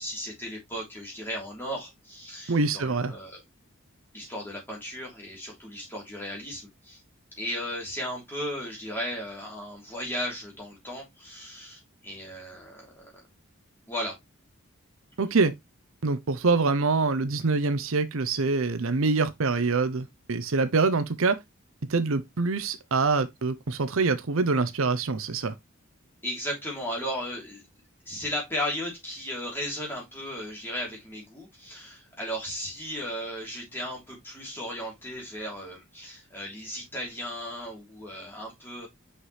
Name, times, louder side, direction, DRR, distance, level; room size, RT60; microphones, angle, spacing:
voice 1, 0.0-3.4 4.1-7.0 7.4-13.1 13.9-14.2 26.2-27.6 28.0-38.9, equal, 10° left, 3.2 m, -35 dB
voice 2, 2.5-3.1 15.2-15.5 16.0-21.4 21.9-25.5, right 4 dB, 65° right, 0.6 m, -25 dB
5.7 x 5.6 x 3.1 m
head